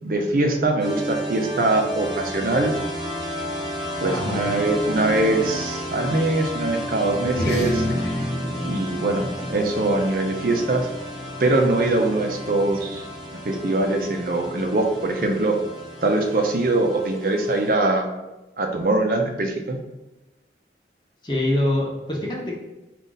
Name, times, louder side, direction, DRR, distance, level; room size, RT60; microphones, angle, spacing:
voice 1, 0.0-2.7 4.0-7.8 8.6-10.9 11.4-13.0 13.5-15.6 16.0-18.0 18.6-19.8, right 2 dB, 50° right, 2 dB, 0.5 m, -22 dB
sound 1, 0.8-17.7, equal, 25° right, 1.0 m, -32 dB
voice 2, 4.1-4.4 21.2-22.6, left 1 dB, 25° left, -2 dB, 0.9 m, -24 dB
sound 2, 7.2-12.0, left 1 dB, 65° left, 1.1 m, -30 dB
5.2 x 2.4 x 3.9 m, 1.1 s
head